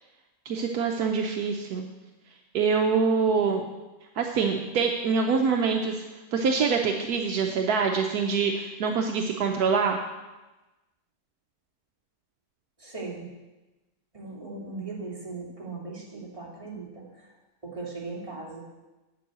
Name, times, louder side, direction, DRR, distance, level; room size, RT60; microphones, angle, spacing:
voice 1, 0.5-1.9 2.5-3.6 4.2-6.0 6.3-10.0, right 5 dB, 75° right, 3 dB, 1.2 m, -25 dB
voice 2, 12.8-13.3 14.1-17.0 17.6-18.6, right 3 dB, 20° right, -5 dB, 2.7 m, -38 dB
9.8 x 5.5 x 8.0 m, 1.1 s
omnidirectional pair, 1.7 m